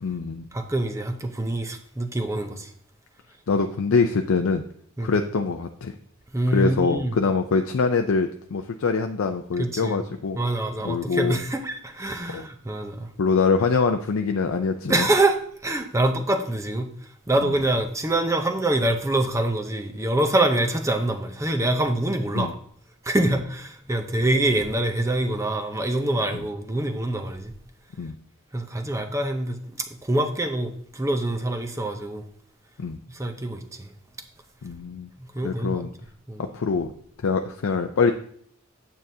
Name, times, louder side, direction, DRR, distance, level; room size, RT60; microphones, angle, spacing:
voice 1, 0.0-0.5 3.5-4.6 5.0-5.9 6.5-10.4 10.8-11.4 12.3-12.4 13.2-15.1 17.4-17.6 22.3-22.5 23.2-23.3 26.3-26.4 28.0-28.2 32.8-33.0 34.6-35.1 35.4-35.9 36.4-36.9 37.2-38.1, left 4 dB, 70° left, 5 dB, 0.5 m, -24 dB
voice 2, 0.5-2.7 5.0-5.1 6.3-7.2 9.6-10.0 10.3-13.1 14.9-16.9 17.3-22.5 23.0-27.5 28.5-32.2 33.1-33.9 35.2-35.8 36.3-36.4, right 1 dB, 15° right, 5 dB, 0.7 m, -25 dB
8.8 x 7.5 x 2.7 m, 0.62 s
head